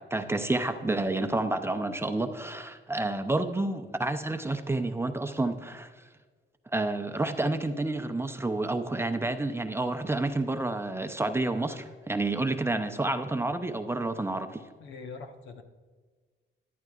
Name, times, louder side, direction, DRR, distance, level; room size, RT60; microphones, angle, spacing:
voice 1, 0.0-5.9 6.7-14.6, right 2 dB, 10° right, 7 dB, 0.6 m, -29 dB
voice 2, 14.8-15.6, left 4 dB, 70° left, 6 dB, 1.1 m, -43 dB
14.0 x 11.0 x 2.4 m, 1.4 s
cardioid pair, 90°, 20 cm